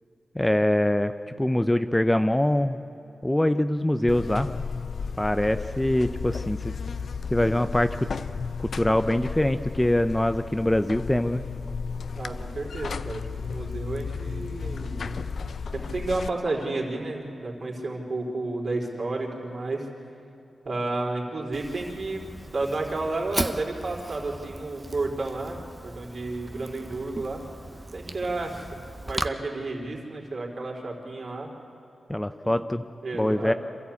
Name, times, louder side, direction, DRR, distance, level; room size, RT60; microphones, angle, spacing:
voice 1, 0.3-1.1 1.4-2.8 3.2-4.5 5.2-6.7 7.3-8.1 8.6-11.5 32.1-32.8 33.1-33.5, left 1 dB, 10° left, 10 dB, 0.6 m, -23 dB
Buzz, 4.1-16.3, left 5 dB, 70° left, 0.6 m, -34 dB
voice 2, 12.1-15.2 15.7-19.9 20.6-27.4 27.9-28.5 29.0-31.5 32.5-32.6 33.0-33.6, right 2 dB, 60° right, -1 dB, 4.1 m, -31 dB
Fire, 21.5-29.3, right 2 dB, 20° right, 0.8 m, -37 dB
26.5 x 13.5 x 8.4 m, 2.8 s
cardioid pair, 70°, 0 cm